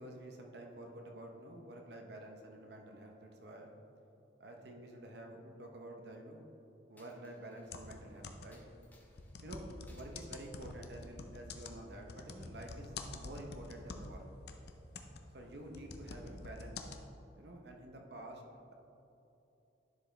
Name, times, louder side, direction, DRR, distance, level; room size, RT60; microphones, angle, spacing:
voice 1, 0.0-4.1 4.4-6.4 6.9-8.6 9.4-14.3 15.3-16.9 17.3-18.4, right 1 dB, 65° right, 2 dB, 0.8 m, -49 dB
Coin (dropping), 7.0-8.0 8.5-9.3 9.9-10.2 10.6-11.7, left 2 dB, 10° left, 0.9 m, -68 dB
sound 1, 7.6-8.7 9.1-14.2 14.5-17.0, left 3 dB, 60° left, 0.5 m, -47 dB
10.5 x 5.0 x 3.3 m, 3.0 s
head